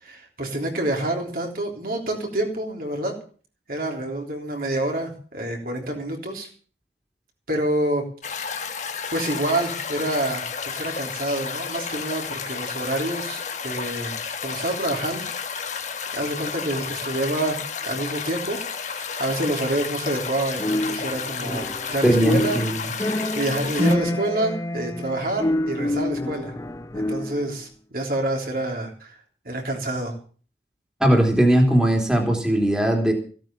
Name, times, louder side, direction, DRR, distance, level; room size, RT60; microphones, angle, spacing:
voice 1, 0.0-3.1 3.7-6.5 7.5-8.6 9.1-14.1 14.4-15.3 15.6-15.9 16.1-17.6 17.9-18.6 19.2-26.5 26.9-29.2 29.5-30.1, right 1 dB, 55° right, 1 dB, 3.5 m, -27 dB
sound 1, 8.2-24.0, left 6 dB, 40° left, 1.4 m, -32 dB
sound 2, 20.6-21.9 22.2-27.5, left 1 dB, 20° left, 0.7 m, -27 dB
voice 2, 22.0-22.9 31.0-33.1, right 1 dB, 5° right, 0 dB, 3.0 m, -19 dB
15.5 x 9.1 x 7.2 m, 0.42 s
head